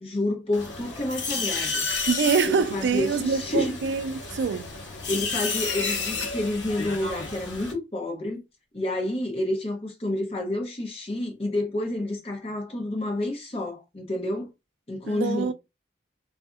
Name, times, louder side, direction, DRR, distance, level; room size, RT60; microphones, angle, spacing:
voice 1, 0.0-1.9 2.4-3.8 5.1-8.4 8.7-14.5 14.9-15.5, left 1 dB, 30° left, 0.7 m, -29 dB
sound 1, 0.5-7.7, left 4 dB, 80° left, 0.8 m, -31 dB
voice 2, 2.1-4.7 15.0-15.5, right 5 dB, 75° right, 0.3 m, -25 dB
2.7 x 2.5 x 2.3 m
head